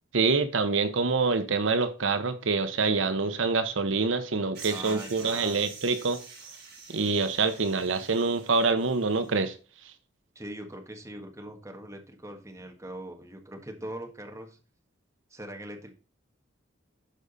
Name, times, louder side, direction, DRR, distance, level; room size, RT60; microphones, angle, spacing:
voice 1, 0.1-6.2 6.9-9.5, right 4 dB, 75° right, 10 dB, 0.9 m, -26 dB
sound 1, 4.5-9.3, right 4 dB, 55° right, 4.8 m, -46 dB
voice 2, 4.7-5.7 10.3-14.6 15.3-15.9, right 1 dB, 15° right, 3 dB, 1.6 m, -41 dB
12.0 x 5.0 x 4.1 m, 0.37 s
head